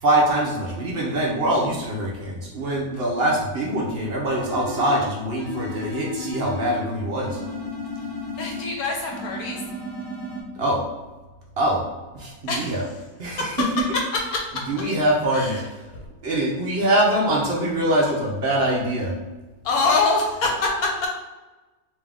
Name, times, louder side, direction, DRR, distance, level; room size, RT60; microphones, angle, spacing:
voice 1, 0.0-7.4 10.6-10.8 11.6-11.8 12.1-12.8 13.2-13.9 14.6-15.6 16.2-19.1, right 1 dB, 55° right, -2 dB, 0.7 m, -23 dB
sound 1, 4.4-5.1 5.4-6.9 7.2-8.7 9.1-10.4, left 1 dB, 5° left, 1.0 m, -33 dB
voice 2, 8.4-9.6 12.5-12.8 14.3-14.6 15.3-15.7 15.9-16.0 19.6-21.1, left 3 dB, 70° left, 0 dB, 1.0 m, -24 dB
3.7 x 2.7 x 3.5 m, 1.2 s
omnidirectional pair, 1.7 m